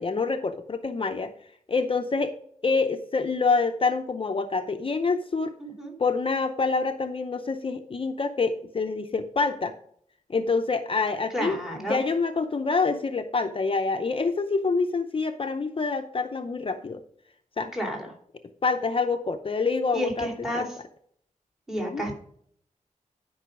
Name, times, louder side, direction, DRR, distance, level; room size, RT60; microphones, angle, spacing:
voice 1, 0.0-1.3 1.7-2.4 2.6-5.5 6.0-9.7 10.3-17.0 17.6-17.7 18.6-20.3 20.5-20.7 21.8-22.0, left 4 dB, 40° left, 7 dB, 0.7 m, -26 dB
voice 2, 5.6-5.9 11.3-12.0 17.7-18.1 19.9-20.8 21.7-22.1, equal, ahead, 0 dB, 2.7 m, -31 dB
11.5 x 5.5 x 5.1 m, 0.64 s
wide cardioid pair, 125°, 13 cm